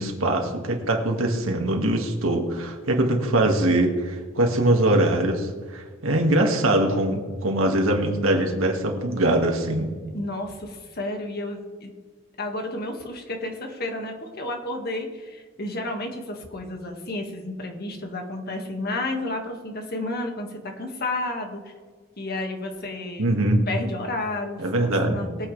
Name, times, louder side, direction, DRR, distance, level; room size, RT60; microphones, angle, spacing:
voice 1, 0.0-9.9 23.2-23.6 24.6-25.2, right 1 dB, 85° right, 2 dB, 2.0 m, -22 dB
voice 2, 10.1-11.9 12.4-21.7 22.2-23.3 23.7-25.5, left 2 dB, 50° left, 3 dB, 1.9 m, -31 dB
22.5 x 8.6 x 3.4 m, 1.5 s
head